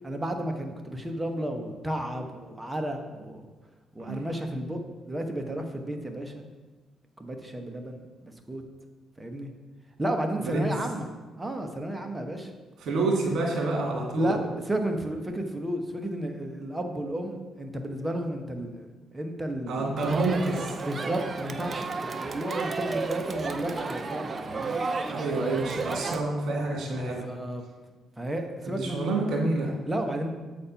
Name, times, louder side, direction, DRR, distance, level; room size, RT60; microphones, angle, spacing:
voice 1, 0.0-3.4 3.9-4.8 5.0-6.5 7.2-8.6 9.2-9.5 10.0-12.5 14.2-14.4 14.7-18.9 19.1-19.9 20.8-24.8 26.9-27.6 28.2-29.0 29.9-30.3, right 1 dB, 15° right, 4 dB, 1.0 m, -32 dB
voice 2, 12.8-14.3 19.7-20.7 24.7-24.8 25.1-27.3 28.7-29.7, right 2 dB, 65° right, -1 dB, 2.2 m, -28 dB
Crowd, 20.0-26.2, right 4 dB, 35° right, 0.5 m, -33 dB
7.9 x 4.3 x 5.6 m, 1.3 s
cardioid pair, 90°, 0 cm